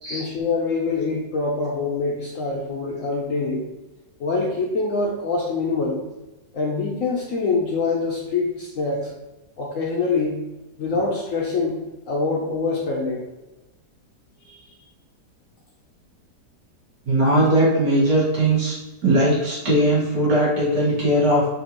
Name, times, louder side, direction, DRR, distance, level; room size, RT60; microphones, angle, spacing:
voice 1, 0.1-3.7 4.2-6.0 6.5-9.1 9.6-10.4 10.8-11.8 12.1-13.3 14.4-14.7, left 3 dB, 65° left, -3 dB, 0.8 m, -25 dB
voice 2, 17.1-18.8 19.0-21.5, right 1 dB, 70° right, -7 dB, 2.2 m, -19 dB
4.2 x 2.7 x 2.9 m, 1.0 s
omnidirectional pair, 1.9 m